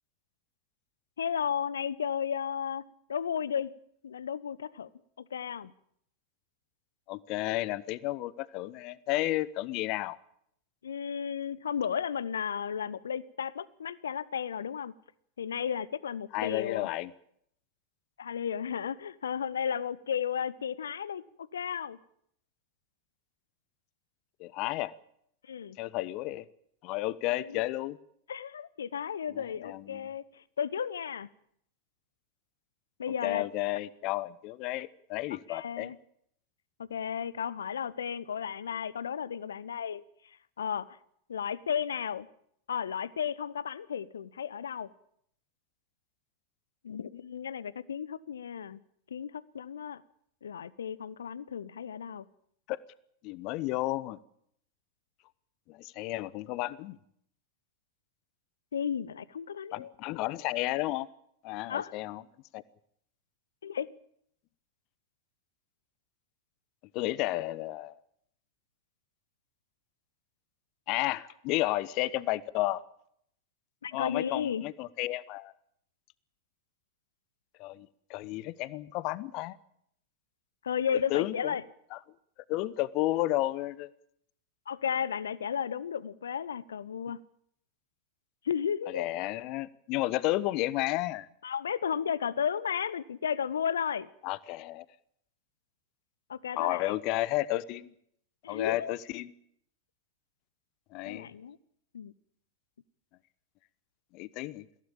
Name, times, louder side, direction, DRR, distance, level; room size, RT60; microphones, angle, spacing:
voice 1, 1.2-3.7 4.0-4.9 5.2-5.7 10.8-14.9 15.4-16.9 18.2-21.2 21.5-22.0 25.5-25.8 27.4-27.6 28.3-31.3 33.0-33.5 35.5-36.0 36.9-40.0 40.6-41.0 41.3-42.3 42.7-44.9 46.8-48.8 49.1-50.0 50.4-52.3 58.7-59.9 61.7-61.9 63.6-63.9 73.8-74.6 80.6-81.6 84.7-87.2 88.4-89.1 91.4-94.1 96.3-97.0 98.4-98.9 101.1-101.6 101.9-102.1, left 8 dB, 65° left, 0.9 m, -34 dB
voice 2, 7.1-10.2 16.3-17.1 24.4-24.9 25.8-26.4 26.8-28.0 29.3-30.0 33.1-35.9 52.7-52.8 53.2-54.2 55.7-57.0 59.7-61.1 61.4-62.2 62.5-62.6 66.9-67.9 70.9-72.8 73.9-75.5 77.6-79.6 81.1-81.5 81.9-82.0 82.5-83.9 88.9-91.3 94.2-94.8 96.6-97.9 98.5-99.3 100.9-101.3 104.1-104.7, left 17 dB, 40° left, 1.0 m, -32 dB
22.0 x 16.5 x 8.8 m
figure-of-eight pair, 90°, 0 cm